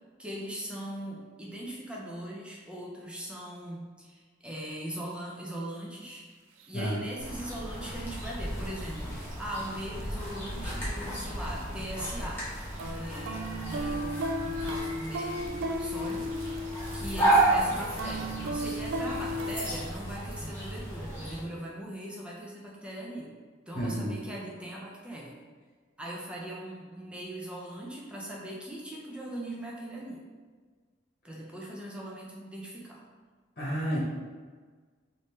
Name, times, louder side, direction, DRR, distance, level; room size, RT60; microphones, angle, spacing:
voice 1, 0.2-6.2 6.7-12.4 12.8-16.4 16.9-23.3 23.7-25.4 26.0-30.2 31.2-33.0, right 1 dB, 5° right, -4 dB, 0.5 m, -40 dB
sound 1, 6.6-6.7 7.4-7.5 8.3-9.4 9.7-10.0 10.3-11.9 12.2-19.6, equal, 75° right, 0.3 m, -35 dB
sound 2, 7.2-21.4, right 2 dB, 10° left, 1.0 m, -32 dB
voice 2, 23.7-24.1 33.6-34.0, equal, 45° left, -8 dB, 1.0 m, -30 dB
3.5 x 2.7 x 3.1 m, 1.5 s
head